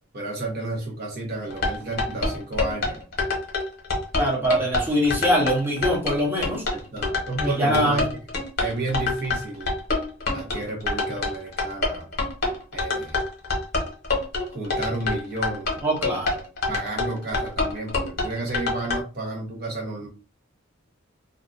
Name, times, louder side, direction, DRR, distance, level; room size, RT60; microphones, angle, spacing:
voice 1, 0.1-3.0 6.7-8.1 8.6-9.7 10.3-12.1 12.7-13.2 14.5-15.8 16.7-20.1, right 2 dB, 50° right, 0 dB, 0.9 m, -31 dB
sound 1, 1.5-19.0, left 3 dB, 50° left, 1.0 m, -26 dB
voice 2, 4.1-6.6 7.4-8.0 15.8-16.4, equal, 10° right, -2 dB, 0.8 m, -23 dB
2.6 x 2.4 x 2.4 m, 0.33 s
head